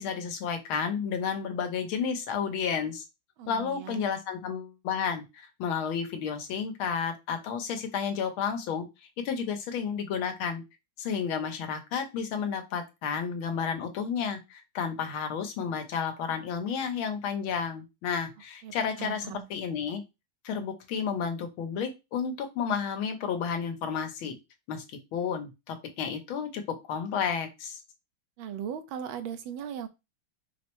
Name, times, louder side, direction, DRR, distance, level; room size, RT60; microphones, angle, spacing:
voice 1, 0.0-3.0 3.5-8.9 9.2-10.6 11.0-20.0 20.4-24.4 24.7-26.6 26.9-27.8, left 6 dB, 80° left, 6 dB, 1.6 m, -31 dB
voice 2, 3.4-4.0 18.6-19.5 28.4-29.9, right 8 dB, 85° right, 9 dB, 1.5 m, -38 dB
4.9 x 2.1 x 4.4 m, 0.24 s
omnidirectional pair, 2.2 m